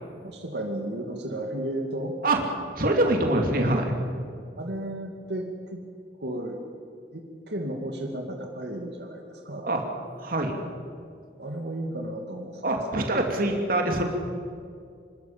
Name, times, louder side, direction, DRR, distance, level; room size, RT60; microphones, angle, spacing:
voice 1, 0.2-2.2 4.6-5.8 6.2-6.6 7.1-9.7 11.4-13.1, right 1 dB, 75° right, 2 dB, 2.3 m, -34 dB
voice 2, 2.7-4.0 9.6-9.8 10.2-10.6 12.6-14.0, right 1 dB, 55° right, 2 dB, 2.7 m, -24 dB
26.5 x 13.0 x 8.7 m, 2.3 s
head